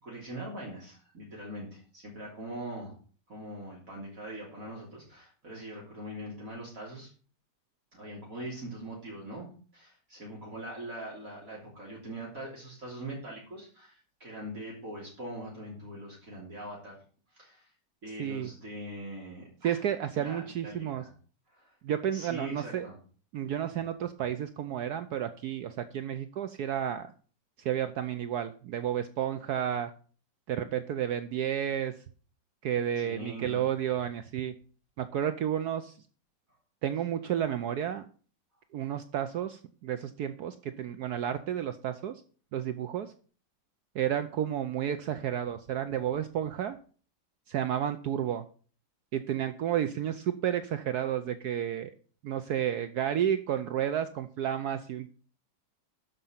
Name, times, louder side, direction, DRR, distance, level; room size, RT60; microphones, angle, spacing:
voice 1, 0.0-2.9 3.3-7.1 7.9-17.0 17.3-17.7 18.0-19.9 20.1-21.1 21.5-21.8 22.1-23.0 33.0-33.6, right 1 dB, 50° right, -4 dB, 3.6 m, -42 dB
voice 2, 18.2-18.5 19.6-21.0 21.8-22.9 23.3-27.1 27.6-29.9 30.5-31.9 32.6-34.5 35.0-36.0 36.8-38.1 38.7-42.2 42.5-43.1 43.9-46.8 47.5-48.4 49.1-51.9 52.2-55.1, right 10 dB, 70° right, 10 dB, 1.2 m, -31 dB
12.5 x 5.3 x 7.3 m, 0.41 s
omnidirectional pair, 1.9 m